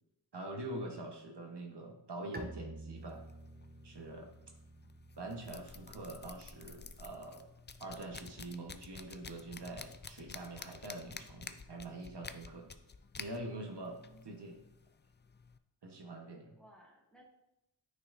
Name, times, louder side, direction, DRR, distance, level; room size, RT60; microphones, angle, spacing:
voice 1, 0.3-3.2 3.8-4.3 5.2-7.4 7.8-12.7 13.2-14.0 14.2-14.5 15.8-16.5, right 2 dB, 70° right, 1 dB, 1.2 m, -44 dB
Bowed string instrument, 2.3-7.9, right 2 dB, 25° right, 0.6 m, -52 dB
sound 1, 3.0-15.6, left 5 dB, 25° left, 0.4 m, -51 dB
voice 2, 13.9-14.8 16.6-17.2, right 1 dB, ahead, -4 dB, 1.8 m, -62 dB
9.7 x 5.7 x 2.6 m, 0.86 s
wide cardioid pair, 75°, 42 cm